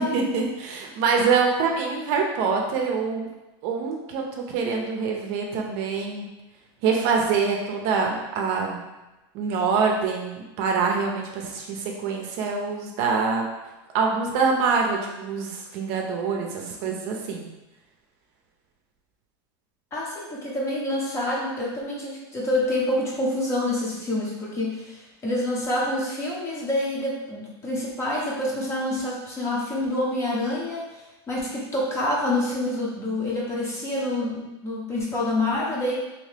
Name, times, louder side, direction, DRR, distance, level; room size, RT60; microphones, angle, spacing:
voice 1, 0.0-3.3 3.6-6.3 6.8-8.9 9.3-13.4 13.9-17.5, right 5 dB, 50° right, 1 dB, 0.5 m, -25 dB
voice 2, 19.9-30.8 31.3-36.0, left 1 dB, 20° left, -4 dB, 0.7 m, -27 dB
2.8 x 2.7 x 3.3 m, 1.0 s
supercardioid pair, 155°, 14 cm